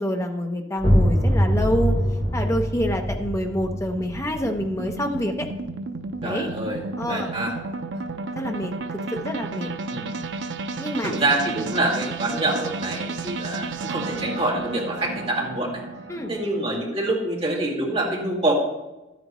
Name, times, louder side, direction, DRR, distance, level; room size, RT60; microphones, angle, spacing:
voice 1, 0.0-1.9 2.3-5.5 6.2-6.5 7.0-7.3 7.9-8.0 8.4-8.7 9.1-9.7 10.8-11.1 16.1-16.3, equal, 15° left, 4 dB, 0.8 m, -27 dB
sound 1, 0.8-6.3, equal, 35° left, 3.0 m, -24 dB
sound 2, 2.5-16.7, right 3 dB, 75° right, 0.6 m, -33 dB
voice 2, 6.2-6.8 7.1-7.5 9.9-10.2 11.0-15.8 16.3-18.5, right 2 dB, 30° right, -3 dB, 2.1 m, -26 dB
12.5 x 9.2 x 3.1 m, 1.0 s
head